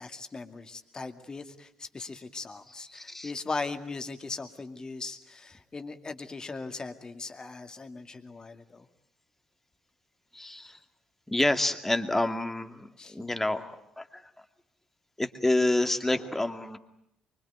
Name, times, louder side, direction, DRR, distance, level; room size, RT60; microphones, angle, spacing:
voice 1, 0.0-8.9 13.0-13.2, left 3 dB, 30° left, 7 dB, 2.3 m, -39 dB
voice 2, 2.9-3.3 10.3-10.8 11.3-14.2 15.2-16.8, left 1 dB, 10° left, 7 dB, 2.2 m, -28 dB
25.0 x 24.0 x 9.3 m, 0.78 s
figure-of-eight pair, 50°, 3 cm